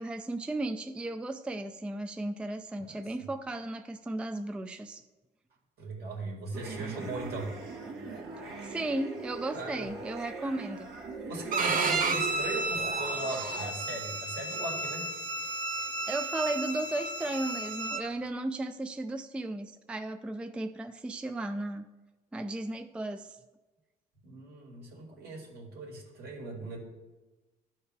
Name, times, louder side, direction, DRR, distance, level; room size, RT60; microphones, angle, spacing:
voice 1, 0.0-5.0 8.6-10.9 16.1-21.9 22.3-23.4, right 2 dB, 5° right, 8 dB, 0.3 m, -35 dB
voice 2, 5.8-7.5 9.5-9.9 11.3-15.1 24.2-26.8, right 2 dB, 70° right, -1 dB, 2.2 m, -39 dB
sound 1, 6.5-13.7, right 3 dB, 85° right, 1.8 m, -40 dB
Bowed string instrument, 11.5-18.0, right 3 dB, 55° right, 0.9 m, -32 dB
12.5 x 4.3 x 3.4 m, 1.2 s
cardioid pair, 110°, 17 cm